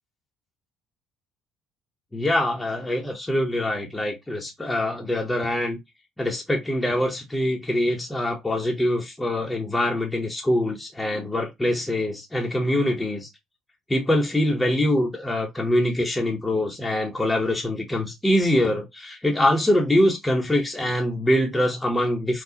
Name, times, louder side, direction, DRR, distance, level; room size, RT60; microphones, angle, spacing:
voice 1, 2.1-5.8 6.2-13.3 13.9-22.4, left 1 dB, 10° left, 1.0 m, -24 dB
4.4 x 2.4 x 2.8 m
cardioid pair, 95°, 0 cm